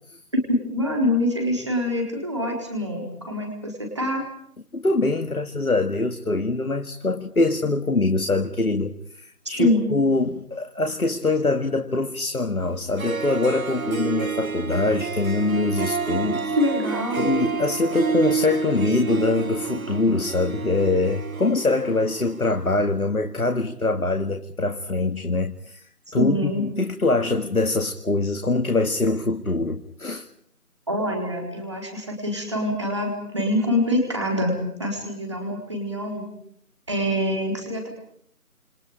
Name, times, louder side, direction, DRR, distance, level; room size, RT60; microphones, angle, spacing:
voice 1, 0.5-4.2 9.6-9.9 16.6-17.3 26.1-26.6 30.9-36.3 36.9-37.9, left 1 dB, 20° right, 0 dB, 4.1 m, -25 dB
voice 2, 4.7-16.6 17.2-25.8 26.1-30.3, left 2 dB, 65° left, 7 dB, 2.1 m, -23 dB
Harp, 12.7-12.8 13.0-22.5, right 5 dB, 65° right, 0.9 m, -29 dB
28.5 x 28.0 x 5.0 m, 0.65 s
figure-of-eight pair, 180°, 45 cm